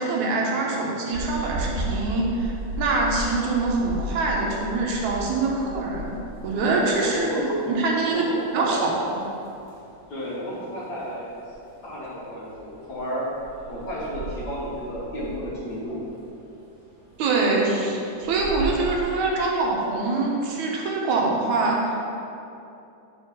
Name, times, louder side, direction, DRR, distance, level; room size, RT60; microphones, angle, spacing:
voice 1, 0.0-6.1 6.4-7.3 7.7-8.3 8.5-8.9 17.2-22.0, right 3 dB, 70° right, -2 dB, 2.2 m, -24 dB
sound 1, 1.1-19.5, right 1 dB, 45° right, 2.3 m, -37 dB
voice 2, 6.9-7.6 8.0-8.9 10.1-11.3 11.8-13.3 13.7-16.0, equal, 65° left, -8 dB, 0.9 m, -32 dB
5.4 x 4.5 x 6.1 m, 2.7 s
omnidirectional pair, 3.7 m